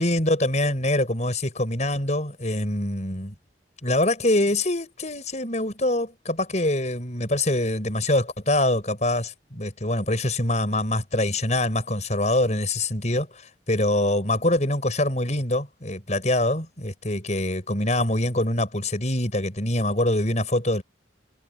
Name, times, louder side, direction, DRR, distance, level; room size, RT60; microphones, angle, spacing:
voice 1, 0.0-3.3 3.8-20.8, left 1 dB, 40° left, 6.3 m, -24 dB
head